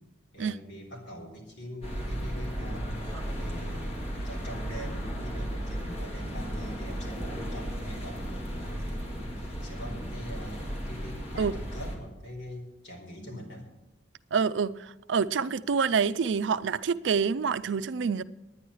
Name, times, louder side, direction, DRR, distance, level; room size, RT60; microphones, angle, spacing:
voice 1, 0.3-2.9 3.3-13.7, equal, 80° left, 3.2 m, -43 dB
sound 1, 1.8-12.0, equal, 35° left, 2.1 m, -35 dB
voice 2, 14.3-18.2, right 6 dB, 90° right, 0.4 m, -27 dB
10.0 x 9.8 x 6.3 m
head